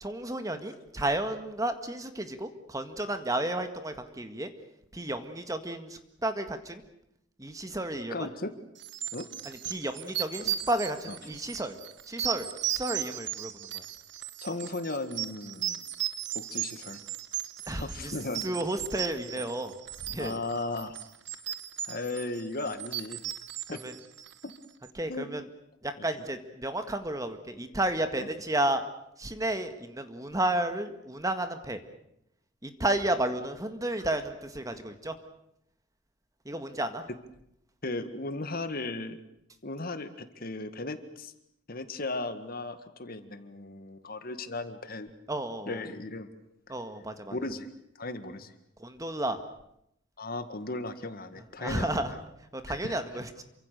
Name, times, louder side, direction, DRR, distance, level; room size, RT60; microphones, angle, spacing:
voice 1, 0.0-4.5 4.9-6.8 7.4-8.3 9.5-11.8 12.1-13.8 17.7-18.1 18.4-19.7 20.0-20.4 23.7-23.9 25.0-25.4 25.8-28.8 29.2-31.8 32.6-35.1 36.5-37.0 45.3-45.8 46.7-47.4 48.8-49.4 51.6-52.1 52.5-53.4, right 1 dB, 15° right, 8 dB, 1.8 m, -32 dB
voice 2, 8.1-8.5 9.1-9.3 10.5-10.6 11.1-11.2 14.4-15.8 16.3-17.0 17.8-18.5 20.2-20.9 21.9-23.2 23.7-23.8 24.4-24.5 25.1-25.3 26.0-26.1 37.8-39.2 39.6-41.3 41.7-45.1 45.7-46.3 46.7-46.8 47.3-47.7 48.0-48.5 50.2-52.2 52.7-52.9, left 2 dB, 50° left, 10 dB, 1.9 m, -36 dB
sound 1, 8.8-24.6, right 12 dB, 60° right, 1.2 m, -36 dB
28.0 x 25.0 x 6.8 m, 0.77 s
head